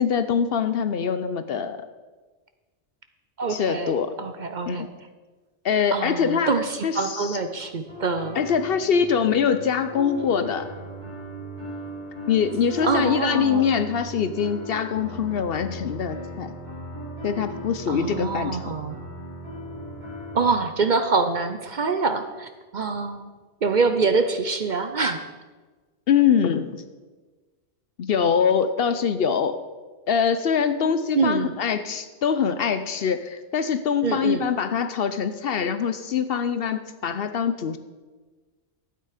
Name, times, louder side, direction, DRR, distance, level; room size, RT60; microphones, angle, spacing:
voice 1, 0.0-1.8 3.5-4.1 4.7-4.9 5.6-6.5 6.8-7.4 8.4-10.7 12.3-16.5 17.2-18.6 26.1-26.8 28.0-29.6 30.1-37.8, left 7 dB, 60° left, 11 dB, 0.8 m, -23 dB
voice 2, 3.4-4.9 5.9-8.4 12.8-14.0 17.9-19.0 20.3-23.3 23.6-25.2 31.1-31.6 34.0-34.4, right 4 dB, 50° right, 8 dB, 0.7 m, -25 dB
sound 1, 7.9-20.4, left 1 dB, 65° right, 4.8 m, -37 dB
12.0 x 9.1 x 4.9 m, 1.3 s
omnidirectional pair, 1.2 m